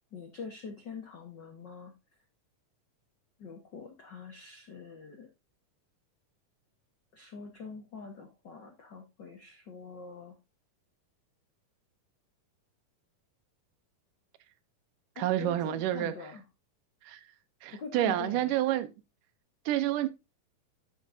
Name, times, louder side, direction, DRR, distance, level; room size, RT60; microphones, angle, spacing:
voice 1, 0.1-1.9 3.4-5.3 7.1-10.3 15.1-16.4 17.7-18.6, left 5 dB, 65° left, 1.0 m, -44 dB
voice 2, 15.2-16.2 17.0-17.2 17.6-18.9 19.7-20.1, right 13 dB, 80° right, 2.3 m, -29 dB
12.5 x 6.2 x 2.6 m
omnidirectional pair, 3.8 m